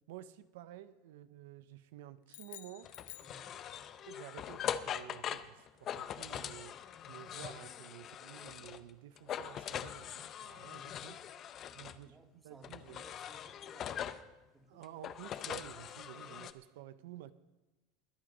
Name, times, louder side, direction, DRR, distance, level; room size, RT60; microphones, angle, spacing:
voice 1, 0.1-2.9 4.1-6.8 7.1-11.2 11.7-12.2 12.4-13.0 14.7-17.3, right 12 dB, 80° right, 0.6 m, -51 dB
sound 1, 2.3-4.1, left 14 dB, 80° left, 0.8 m, -52 dB
sound 2, 2.8-8.9 9.2-12.0 12.6-14.3 14.8-16.5, left 9 dB, 30° left, 0.6 m, -42 dB
voice 2, 3.2-3.6 10.7-10.8 11.6-14.1 14.5-14.8, right 2 dB, 10° right, 1.2 m, -61 dB
22.0 x 7.7 x 5.4 m
supercardioid pair, 155°, 0 cm